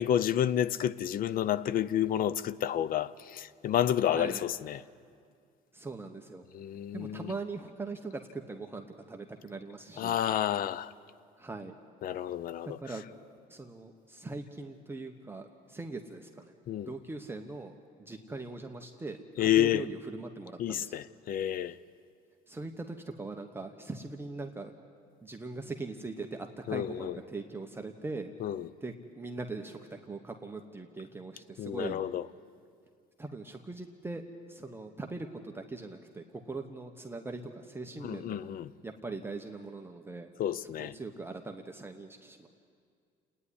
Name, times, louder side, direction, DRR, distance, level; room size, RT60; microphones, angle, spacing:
voice 1, 0.0-4.8 6.5-7.3 10.0-10.9 12.0-12.8 16.7-16.9 19.4-19.9 20.6-21.8 26.7-27.2 28.4-28.7 31.6-32.3 38.0-38.7 40.4-40.9, left 11 dB, 55° left, 0.6 m, -30 dB
voice 2, 5.7-6.4 6.9-10.2 11.4-11.8 12.6-13.0 13.5-16.5 16.8-17.7 18.0-21.0 22.5-24.7 25.2-28.3 28.8-32.0 33.2-38.5 38.8-40.3 40.6-42.5, right 3 dB, 15° right, 1.0 m, -41 dB
29.0 x 9.8 x 9.9 m
cardioid pair, 110°, 17 cm